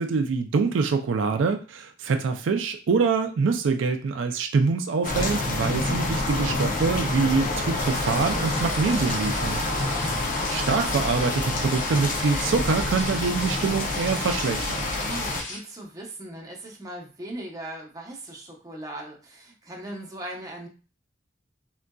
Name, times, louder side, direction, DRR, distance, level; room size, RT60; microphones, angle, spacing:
voice 1, 0.0-9.6 10.5-14.9, right 4 dB, 85° right, 6 dB, 0.4 m, -25 dB
sound 1, 5.0-15.4, left 2 dB, 45° left, 0.5 m, -27 dB
sound 2, 7.7-15.6, left 1 dB, 80° left, 1.6 m, -37 dB
voice 2, 9.6-10.2 15.0-20.7, right 1 dB, 20° right, -2 dB, 0.7 m, -39 dB
3.7 x 2.5 x 2.2 m, 0.34 s
head